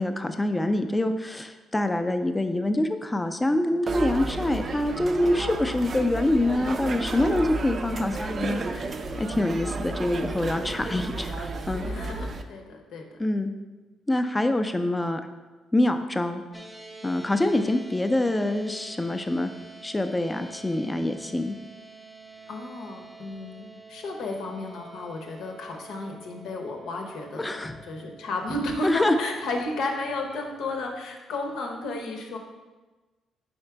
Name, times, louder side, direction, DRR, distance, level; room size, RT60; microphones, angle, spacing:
voice 1, 0.0-8.9 9.2-11.9 13.2-13.5 14.1-15.2 15.7-16.4 17.0-19.5 19.8-21.5 27.4-27.8 28.8-29.1, left 1 dB, 15° left, 7 dB, 0.5 m, -25 dB
sound 1, 3.9-12.4, right 3 dB, 45° right, 0.4 m, -32 dB
voice 2, 11.8-13.2 22.5-32.4, left 2 dB, 80° left, 2 dB, 0.9 m, -33 dB
sound 2, 16.5-30.9, right 3 dB, ahead, 0.8 m, -48 dB
4.9 x 4.3 x 4.5 m, 1.2 s
cardioid pair, 90°, 0 cm